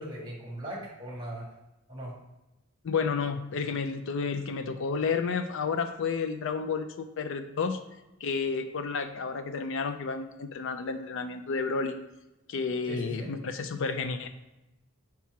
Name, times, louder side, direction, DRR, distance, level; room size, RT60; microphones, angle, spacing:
voice 1, 0.0-1.5 1.9-2.1 12.9-13.3, right 1 dB, 20° right, -2 dB, 1.6 m, -39 dB
voice 2, 2.8-7.8 8.2-12.0 12.5-14.3, left 5 dB, 60° left, 9 dB, 0.4 m, -31 dB
4.8 x 4.2 x 4.6 m, 0.97 s
head